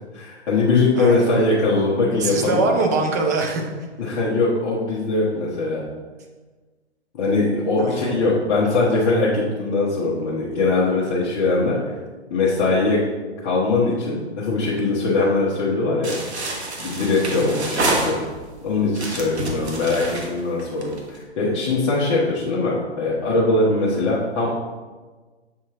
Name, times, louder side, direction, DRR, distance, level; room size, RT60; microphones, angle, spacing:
voice 1, 0.1-2.6 4.0-5.8 7.1-12.0 12.3-13.0 13.4-16.5 16.8-18.2 18.6-24.5, left 3 dB, 25° left, -8 dB, 1.1 m, -21 dB
voice 2, 0.9-1.5 2.2-3.7 7.8-8.3 17.3-17.7, right 3 dB, 15° right, 1 dB, 0.4 m, -23 dB
sound 1, 16.0-18.5 18.9-21.2, right 2 dB, 70° right, 1.4 m, -27 dB
7.5 x 4.3 x 3.7 m, 1.3 s
figure-of-eight pair, 125°, 34 cm